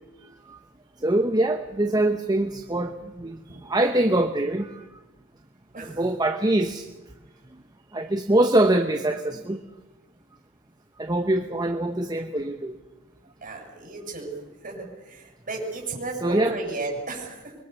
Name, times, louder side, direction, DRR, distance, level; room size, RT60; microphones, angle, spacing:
voice 1, 1.0-4.8 5.8-6.9 7.9-9.6 11.0-12.7 16.2-16.6, right 1 dB, 20° right, 5 dB, 1.0 m, -24 dB
voice 2, 13.4-14.3 14.6-17.6, right 3 dB, 40° right, 0 dB, 7.4 m, -34 dB
25.0 x 22.5 x 6.9 m, 1.1 s
head